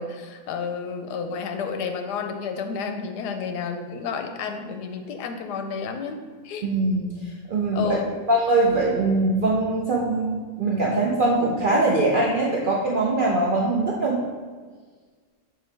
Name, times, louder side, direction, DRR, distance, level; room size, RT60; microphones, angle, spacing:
voice 1, 0.0-6.7 7.7-8.2, left 5 dB, 90° left, 6 dB, 1.2 m, -31 dB
voice 2, 6.6-7.1 7.5-8.0 8.3-14.2, right 2 dB, 65° right, -3 dB, 0.5 m, -22 dB
6.6 x 4.5 x 3.3 m, 1.5 s
omnidirectional pair, 1.7 m